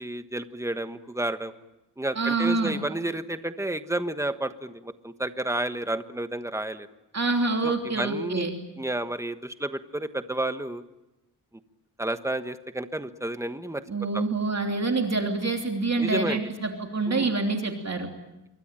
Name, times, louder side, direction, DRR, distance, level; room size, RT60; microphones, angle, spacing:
voice 1, 0.0-1.5 2.0-6.9 7.6-8.5 8.8-10.8 12.0-13.8 14.1-14.2 16.0-16.4 17.1-17.3, right 1 dB, 5° right, 9 dB, 1.2 m, -31 dB
voice 2, 2.2-2.8 7.1-8.5 13.9-18.1, right 3 dB, 40° right, 3 dB, 3.2 m, -26 dB
27.0 x 23.5 x 9.0 m, 0.95 s
wide cardioid pair, 140°, 41 cm